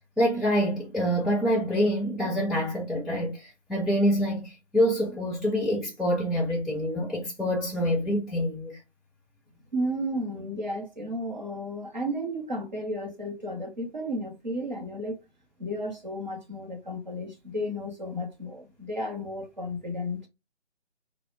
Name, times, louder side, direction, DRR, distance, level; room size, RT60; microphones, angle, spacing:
voice 1, 0.2-8.8, equal, ahead, 0.3 m, -26 dB
voice 2, 9.7-15.2 15.6-20.2, equal, 40° right, 0.8 m, -33 dB
2.5 x 2.1 x 2.4 m
figure-of-eight pair, 160°, 36 cm